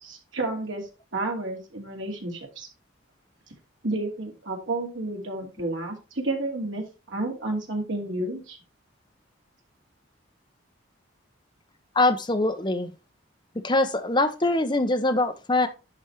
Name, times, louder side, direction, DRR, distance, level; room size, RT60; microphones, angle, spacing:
voice 1, 0.0-0.8 1.1-2.7 3.8-8.6, right 2 dB, 70° right, 1 dB, 2.7 m, -31 dB
voice 2, 11.9-12.9 13.6-15.7, left 2 dB, 25° left, 7 dB, 1.0 m, -23 dB
11.0 x 4.3 x 4.4 m, 0.30 s
head